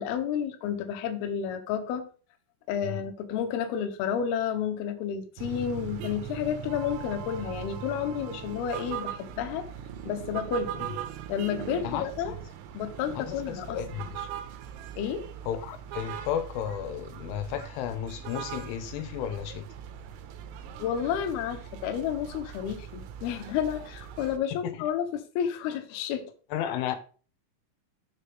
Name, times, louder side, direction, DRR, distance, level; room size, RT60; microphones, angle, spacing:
voice 1, 0.0-2.1 2.7-9.7 10.1-10.8 11.3-12.4 12.7-13.8 15.0-15.3 20.8-26.3, left 8 dB, 75° left, 2.4 m, -31 dB
sound 1, 5.4-24.4, right 9 dB, 90° right, 3.4 m, -40 dB
voice 2, 11.8-12.4 13.2-14.3 15.4-19.7 24.5-24.9 26.5-27.0, left 10 dB, 90° left, 3.2 m, -33 dB
6.9 x 6.9 x 3.6 m
omnidirectional pair, 5.7 m